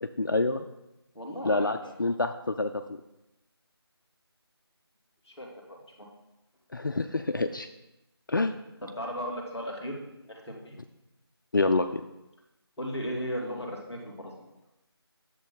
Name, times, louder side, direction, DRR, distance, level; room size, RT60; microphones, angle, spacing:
voice 1, 0.0-0.7 1.4-3.0 6.7-7.7 8.3-8.5 11.5-12.0, left 3 dB, 50° left, 7 dB, 0.4 m, -27 dB
voice 2, 1.1-1.9 5.2-6.1 8.8-10.8 12.8-14.3, equal, 5° left, -12 dB, 1.7 m, -36 dB
10.0 x 7.3 x 4.0 m, 0.94 s
figure-of-eight pair, 165°, 14 cm